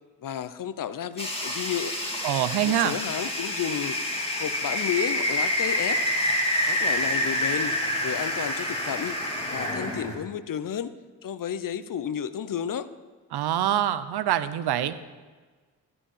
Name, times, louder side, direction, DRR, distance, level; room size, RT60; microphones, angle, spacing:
voice 1, 0.2-1.9 2.6-4.0 4.4-6.0 6.7-9.2 9.5-10.9 11.2-12.9, left 9 dB, 55° left, 14 dB, 0.7 m, -32 dB
sound 1, 1.2-10.1, left 1 dB, 15° left, 3.0 m, -27 dB
voice 2, 2.2-3.0 13.3-15.0, right 11 dB, 75° right, 14 dB, 0.7 m, -25 dB
14.0 x 4.9 x 7.2 m, 1.4 s
supercardioid pair, 45°, 39 cm